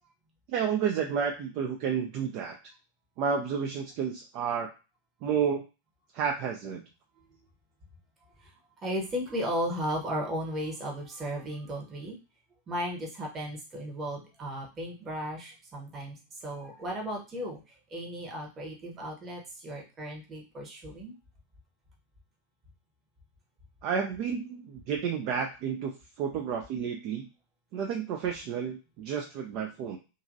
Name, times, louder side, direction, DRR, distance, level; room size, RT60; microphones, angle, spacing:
voice 1, 0.5-2.6 3.2-4.7 5.2-5.6 6.1-6.8 23.8-27.3 27.7-30.0, right 7 dB, 40° right, 2 dB, 0.4 m, -31 dB
voice 2, 8.4-12.2 12.7-21.1, equal, 25° right, -1 dB, 0.9 m, -35 dB
2.8 x 2.5 x 2.5 m, 0.31 s
figure-of-eight pair, 90°, 0 cm